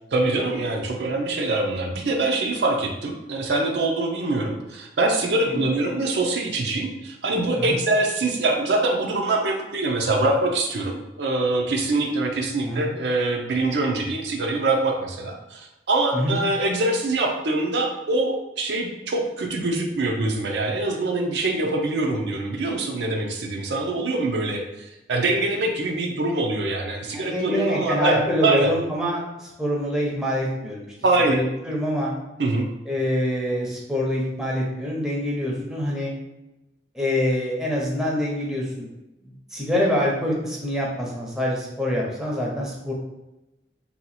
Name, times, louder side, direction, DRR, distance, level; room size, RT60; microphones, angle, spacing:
voice 1, 0.1-28.7 31.0-31.4 32.4-32.7, right 2 dB, 75° right, 1 dB, 0.5 m, -24 dB
voice 2, 27.1-30.9 31.3-32.1 32.9-36.1 36.9-38.9 39.2-42.9, left 1 dB, 5° right, -3 dB, 0.6 m, -25 dB
2.8 x 2.3 x 4.1 m, 0.95 s
head